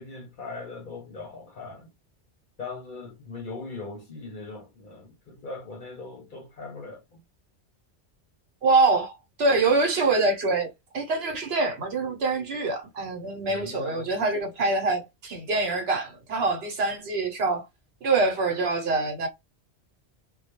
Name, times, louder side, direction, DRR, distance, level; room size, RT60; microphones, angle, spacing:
voice 1, 0.0-1.9 2.6-7.2 13.5-14.1, left 3 dB, 55° left, 0.7 m, -40 dB
voice 2, 8.6-17.7 18.0-19.3, right 3 dB, 65° right, 1.0 m, -25 dB
2.2 x 2.1 x 2.8 m
omnidirectional pair, 1.2 m